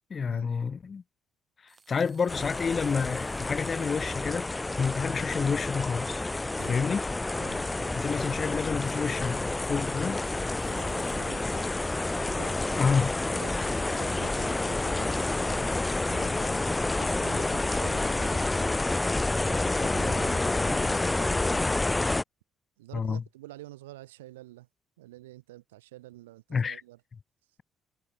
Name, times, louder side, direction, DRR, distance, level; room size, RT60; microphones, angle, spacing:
voice 1, 0.1-1.0 1.6-4.5 4.8-6.2 6.6-7.0 7.9-10.2 12.8-13.1 22.9-23.2 26.5-26.8, left 5 dB, 35° left, 1.0 m, -29 dB
sound 1, 1.7-12.2, right 5 dB, 30° right, 7.3 m, -62 dB
sound 2, 2.3-22.2, left 2 dB, 15° left, 0.6 m, -29 dB
voice 2, 6.6-6.9 7.4-8.0 10.6-11.7 12.2-12.8 13.3-16.7 17.0-18.8 19.4-21.7 22.8-24.7 25.0-27.0, right 17 dB, 70° right, 2.6 m, -48 dB
figure-of-eight pair, 45°, 0 cm